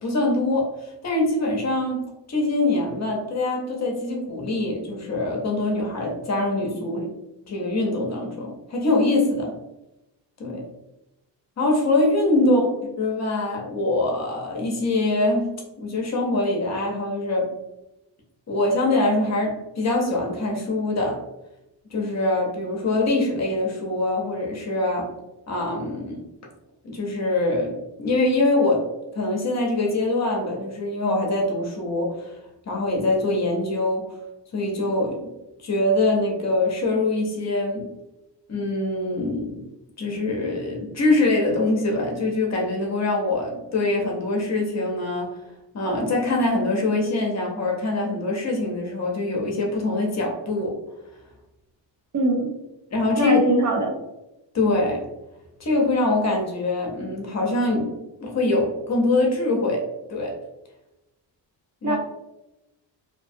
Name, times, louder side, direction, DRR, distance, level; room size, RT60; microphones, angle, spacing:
voice 1, 0.0-7.1 7.5-9.5 10.4-10.7 11.6-12.7 13.0-15.5 15.8-17.5 18.5-21.2 21.9-25.1 25.5-26.2 26.8-28.8 29.1-32.3 32.7-34.1 34.5-35.3 35.6-37.9 38.5-39.7 40.0-45.3 45.7-50.8 52.9-53.4 54.5-55.0 55.6-57.9 58.2-59.8 60.1-60.3 61.8-62.0, left 2 dB, 40° left, -1 dB, 0.6 m, -24 dB
voice 2, 12.4-12.7 52.1-52.5 53.2-53.9 61.8-62.0, right 2 dB, 45° right, 1 dB, 0.5 m, -21 dB
2.6 x 2.2 x 2.6 m, 0.93 s
cardioid pair, 140°, 44 cm